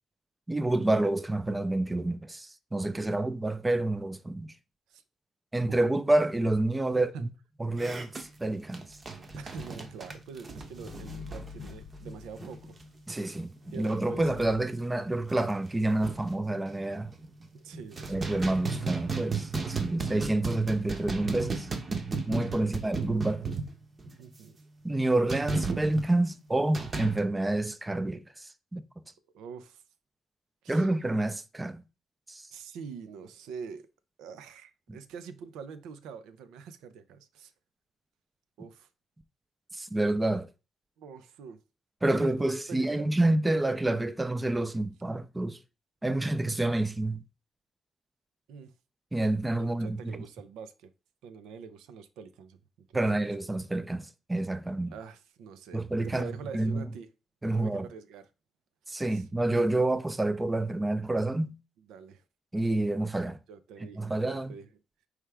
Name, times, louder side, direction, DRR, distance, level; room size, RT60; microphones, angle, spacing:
voice 1, 0.5-4.5 5.5-7.3 7.6-8.9 13.1-17.1 18.1-21.7 22.3-23.4 24.8-28.8 30.7-31.8 32.3-32.4 39.7-40.5 42.0-45.6 46.0-47.2 49.1-50.2 52.9-54.9 55.7-56.9 57.4-57.9 58.9-61.5 62.5-63.4 64.0-64.6, right 2 dB, 15° right, 0.4 m, -28 dB
voice 2, 2.9-3.2 4.9-5.0 5.7-5.8 7.1-7.3 9.4-12.8 13.7-14.6 17.5-18.6 22.8-22.9 24.2-24.6 29.3-29.8 30.6-30.9 32.5-33.9 34.2-37.5 38.6-38.9 41.0-41.6 42.1-43.1 48.5-48.7 49.6-50.9 51.2-52.6 52.9-53.3 54.9-55.8 56.1-57.1 57.5-58.2 58.9-59.3 61.9-62.2 63.5-64.7, right 6 dB, 90° right, 0.5 m, -45 dB
sound 1, 7.8-12.8 13.1-13.3 13.6-14.0 14.4-14.5 14.9-15.0 15.3-16.4 17.0-17.5 17.7-24.2 25.3-26.1 26.7-27.2, right 4 dB, 35° right, 0.8 m, -35 dB
sound 2, 8.9-13.2 13.7-14.6, left 6 dB, 65° left, 0.4 m, -47 dB
4.7 x 3.2 x 3.4 m
cardioid pair, 90°, 0 cm